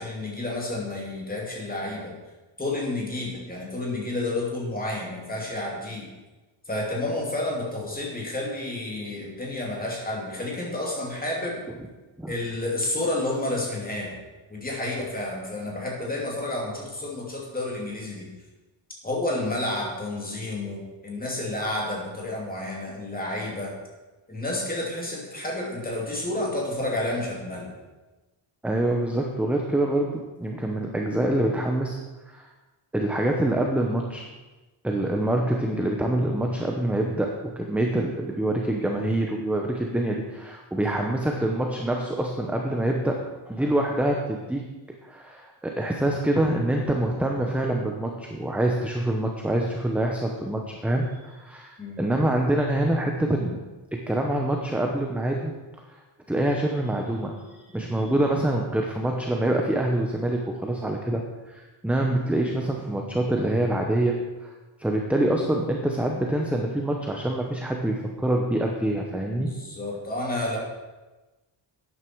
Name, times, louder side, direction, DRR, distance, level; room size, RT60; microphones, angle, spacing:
voice 1, 0.0-2.1 2.6-6.1 6.7-11.6 12.3-14.2 14.5-18.3 19.0-23.7 24.3-27.7 51.8-52.0 69.3-70.6, left 2 dB, 20° left, -2 dB, 2.7 m, -30 dB
voice 2, 28.6-32.0 32.3-32.5 32.9-34.3 34.8-44.6 45.0-53.6 53.9-55.5 56.3-61.2 61.5-64.5 64.8-69.5, right 1 dB, 5° right, 1 dB, 0.8 m, -25 dB
12.5 x 9.7 x 4.6 m, 1.2 s
wide cardioid pair, 175°, 49 cm